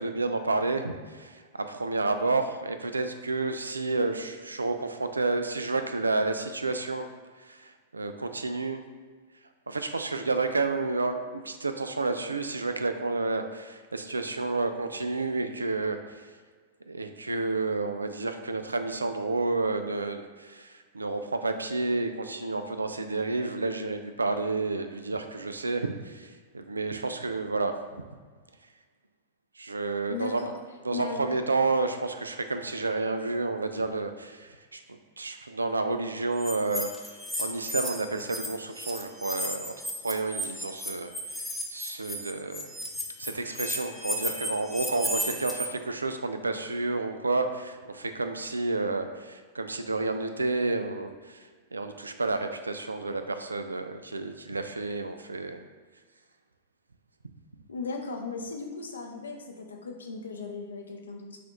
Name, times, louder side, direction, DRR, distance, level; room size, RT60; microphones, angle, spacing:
voice 1, 0.0-7.1 7.4-8.8 9.7-16.3 16.9-27.8 29.6-30.4 30.8-39.7 40.0-42.7 43.2-55.6, right 3 dB, 90° right, 8 dB, 0.3 m, -30 dB
voice 2, 30.1-30.5 30.9-31.3 57.7-61.4, left 4 dB, 80° left, 2 dB, 0.6 m, -37 dB
sound 1, 36.4-38.5 38.7-45.6, equal, ahead, 0.8 m, -34 dB
6.0 x 2.4 x 3.0 m, 1.5 s
hypercardioid pair, 100°, 0 cm